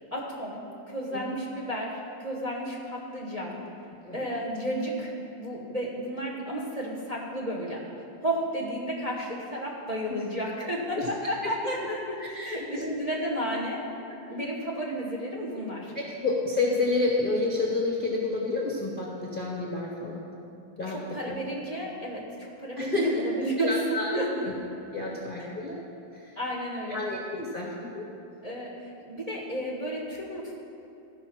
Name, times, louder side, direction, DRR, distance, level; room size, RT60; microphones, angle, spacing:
voice 1, 0.1-3.6 4.1-5.1 5.4-7.8 8.2-13.8 14.3-15.9 20.9-23.7 24.1-24.4 25.3-25.5 26.4-27.0 28.4-30.5, equal, 25° right, -3 dB, 1.0 m, -32 dB
voice 2, 12.2-12.9 14.3-14.4 15.9-20.2 20.8-21.0 21.3-21.4 22.8-23.2 23.6-24.5 24.9-25.8 26.1-26.3 26.9-28.1, left 3 dB, 35° left, -3 dB, 0.9 m, -29 dB
14.5 x 4.9 x 5.9 m, 2.7 s
omnidirectional pair, 2.1 m